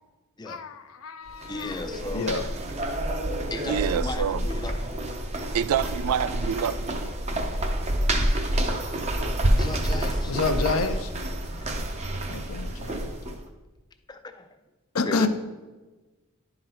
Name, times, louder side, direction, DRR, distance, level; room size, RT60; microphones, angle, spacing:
voice 1, 0.5-1.7 2.1-2.4 10.3-11.1 12.3-13.0 14.9-15.3, left 4 dB, 75° left, 0.6 m, -28 dB
sound 1, 1.3-13.4, right 1 dB, 30° right, 0.6 m, -28 dB
voice 2, 1.5-2.3 3.5-5.0 9.5-10.3 11.6-11.7 12.1-12.2 14.1-14.5 14.9-15.3, left 3 dB, 20° left, 0.4 m, -35 dB
voice 3, 3.7-4.5 5.5-7.0, right 8 dB, 80° right, 0.3 m, -27 dB
11.0 x 3.9 x 4.3 m
head